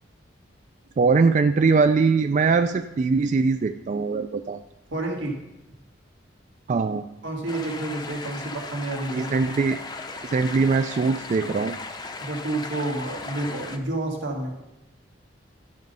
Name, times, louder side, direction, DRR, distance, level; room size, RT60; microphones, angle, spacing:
voice 1, 1.0-4.6 6.7-7.0 9.1-9.8 10.2-11.8, right 4 dB, 40° right, 9 dB, 0.3 m, -21 dB
voice 2, 4.9-5.4 7.2-9.3 12.2-14.6, right 2 dB, 85° right, 0 dB, 1.9 m, -29 dB
sound 1, 7.5-13.8, left 3 dB, 20° left, 0.6 m, -37 dB
12.0 x 5.2 x 5.5 m, 0.91 s
head